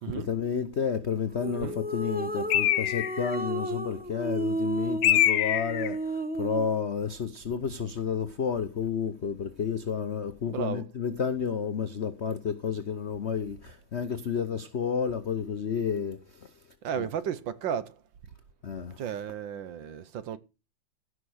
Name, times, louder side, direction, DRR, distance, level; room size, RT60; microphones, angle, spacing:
voice 1, 0.1-16.5 17.0-17.1 18.6-19.0, left 7 dB, 65° left, 0.6 m, -31 dB
sound 1, 1.4-6.8, right 1 dB, 15° right, 0.3 m, -33 dB
Bird, 2.5-3.4 5.0-5.9, left 12 dB, 80° left, 1.7 m, -24 dB
voice 2, 10.5-10.8 16.8-18.0 19.0-20.4, right 8 dB, 65° right, 1.4 m, -33 dB
16.0 x 6.3 x 6.4 m
omnidirectional pair, 2.4 m